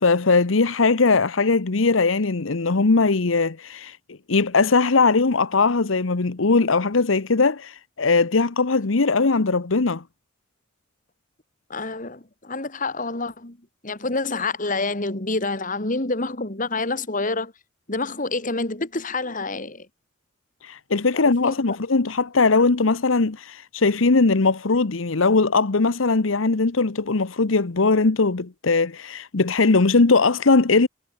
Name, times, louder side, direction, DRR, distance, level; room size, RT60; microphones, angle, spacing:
voice 1, 0.0-4.0 4.3-10.0 20.6-30.9, left 3 dB, 90° left, 1.0 m, -20 dB
voice 2, 11.7-13.6 13.8-17.5 17.9-19.9 21.1-21.8, left 3 dB, 40° left, 2.7 m, -28 dB
head